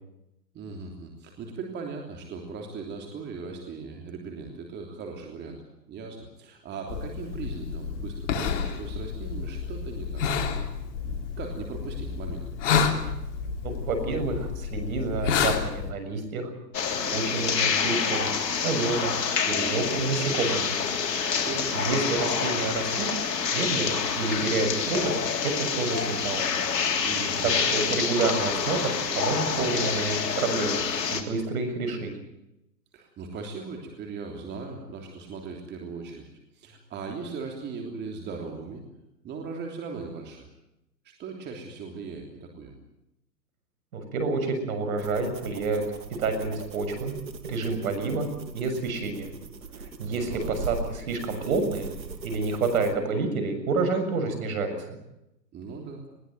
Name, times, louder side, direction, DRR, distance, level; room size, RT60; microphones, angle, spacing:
voice 1, 0.5-5.6 5.9-10.2 11.0-12.5 21.4-21.7 27.0-27.5 32.9-36.3 36.5-38.8 39.2-40.5 41.0-42.8 50.0-50.5 55.5-56.1, right 4 dB, 20° right, 2 dB, 3.2 m, -38 dB
sound 1, 6.9-15.9, left 6 dB, 45° left, 3.2 m, -30 dB
voice 2, 13.6-16.5 17.1-18.3 18.6-19.1 19.5-20.7 21.7-23.1 23.5-26.4 27.4-30.8 31.1-32.1 43.9-45.8 46.2-47.1 47.4-49.3 49.7-51.9 52.2-55.0, right 3 dB, 55° right, 7 dB, 7.1 m, -28 dB
sound 2, 16.7-31.2, left 6 dB, 70° left, 3.8 m, -27 dB
sound 3, 45.0-52.9, right 4 dB, 85° right, 2.8 m, -40 dB
21.0 x 19.0 x 9.1 m, 0.86 s
hypercardioid pair, 135°, 50 cm